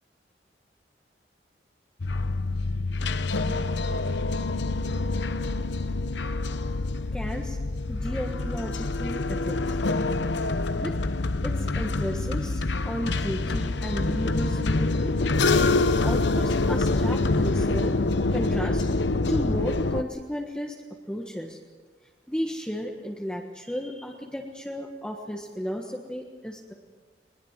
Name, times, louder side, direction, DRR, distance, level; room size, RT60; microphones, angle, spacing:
sound 1, 2.0-20.0, left 2 dB, 75° left, 0.8 m, -26 dB
voice 1, 7.1-7.6 7.9-9.8 10.7-10.9 11.4-15.1 16.0-18.0 18.3-18.9 19.3-20.7 21.1-21.6 22.3-26.7, equal, 5° left, 0 dB, 1.4 m, -33 dB
21.5 x 20.5 x 7.5 m, 1.5 s
head